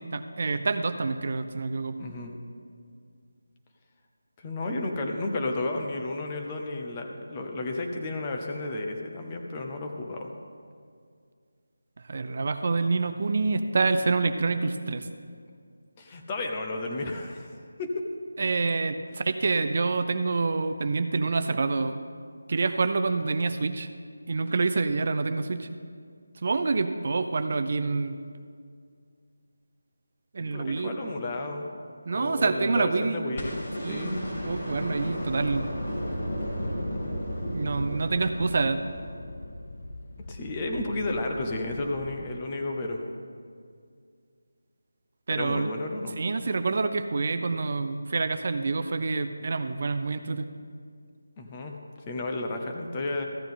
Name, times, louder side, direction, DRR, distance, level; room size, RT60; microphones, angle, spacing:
voice 1, 0.0-2.0 12.1-15.1 18.4-22.0 22.5-23.9 24.3-25.7 26.4-28.2 30.3-31.0 32.1-33.4 33.8-35.7 37.5-38.8 45.3-45.7 46.2-50.5, right 3 dB, 45° right, 9 dB, 0.4 m, -27 dB
voice 2, 2.0-2.3 4.4-10.3 16.0-17.5 17.8-18.0 30.4-31.7 32.1-34.3 40.3-43.0 45.3-46.2 51.4-51.7 52.1-53.2, left 2 dB, 20° left, 2 dB, 0.8 m, -32 dB
sound 1, 33.4-39.5 41.1-41.2, equal, 40° left, 2.6 m, -34 dB
sound 2, 34.1-42.3, left 1 dB, 65° left, 0.7 m, -42 dB
14.0 x 8.8 x 3.8 m, 2.2 s
figure-of-eight pair, 170°, 0 cm